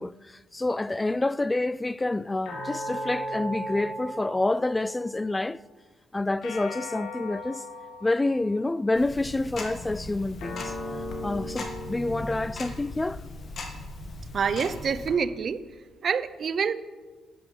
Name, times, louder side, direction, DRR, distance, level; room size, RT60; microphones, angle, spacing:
voice 1, 0.0-5.6 6.1-7.6 8.0-10.7 11.2-13.2, left 2 dB, 15° left, 0.3 m, -28 dB
sound 1, 2.4-5.0 6.4-9.0 10.4-13.0, equal, 85° left, 3.4 m, -37 dB
Tick-tock, 8.9-15.1, left 2 dB, 50° left, 2.2 m, -39 dB
voice 2, 14.3-15.6 16.0-16.7, right 6 dB, 50° right, 0.7 m, -26 dB
13.5 x 9.4 x 5.8 m
cardioid pair, 90°, 0 cm